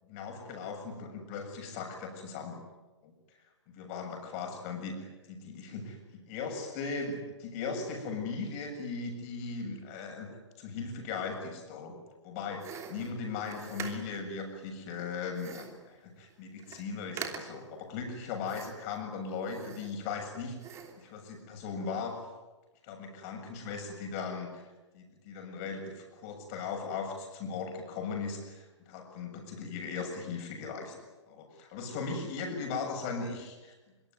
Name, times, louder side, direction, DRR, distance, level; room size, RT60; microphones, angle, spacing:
voice 1, 0.0-2.6 3.0-3.1 3.7-10.3 10.6-12.0 12.2-22.2 22.8-24.6 24.9-31.0 31.3-33.7, left 4 dB, 30° left, 4 dB, 7.3 m, -38 dB
sound 1, 12.6-14.3 15.3-15.9 16.3-16.4 16.6-16.9 17.2-17.7 18.4-19.0 19.4-20.2 20.6-21.1, right 7 dB, 20° right, 3.0 m, -44 dB
25.0 x 24.5 x 9.4 m, 1.2 s
figure-of-eight pair, 125°, 15 cm